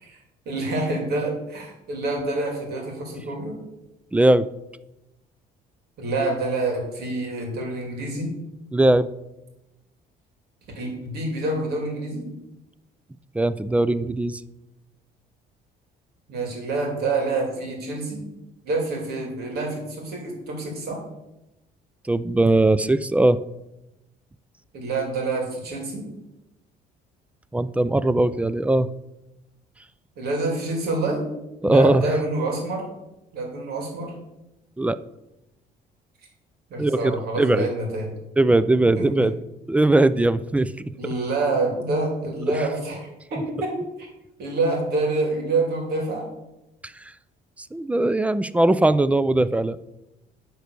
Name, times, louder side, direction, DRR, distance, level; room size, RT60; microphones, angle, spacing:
voice 1, 0.4-3.5 6.0-8.3 10.7-12.3 16.3-18.2 18.6-21.0 24.7-26.0 30.2-31.2 31.6-32.9 33.3-34.1 36.7-38.1 39.0-39.3 41.0-44.1 44.4-46.3, right 2 dB, 70° right, 1 dB, 3.2 m, -27 dB
voice 2, 4.1-4.5 8.7-9.1 13.3-14.4 22.1-23.4 27.5-28.9 31.6-32.0 34.8-35.0 36.8-37.7 38.4-39.3 39.7-40.7 41.0-41.1 47.7-49.8, right 2 dB, 10° right, 16 dB, 0.4 m, -20 dB
10.0 x 4.6 x 6.7 m, 0.94 s
cardioid pair, 110°, 17 cm